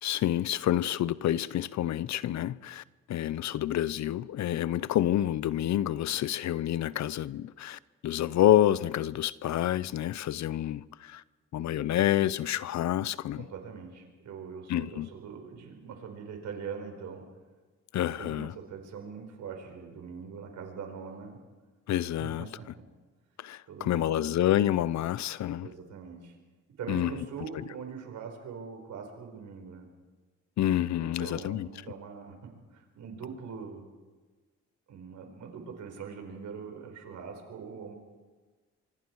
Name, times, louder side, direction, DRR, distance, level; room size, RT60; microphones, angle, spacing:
voice 1, 0.0-11.2 11.5-13.4 14.7-15.1 17.9-18.5 21.9-22.5 23.4-25.7 26.9-27.1 30.6-31.7, left 12 dB, 65° left, 0.7 m, -28 dB
voice 2, 13.3-17.2 18.2-21.4 22.2-22.7 23.7-24.4 25.6-26.4 26.8-29.9 31.2-33.9 34.9-37.9, right 6 dB, 70° right, 4.9 m, -42 dB
25.0 x 24.5 x 4.7 m
cardioid pair, 90°, 30 cm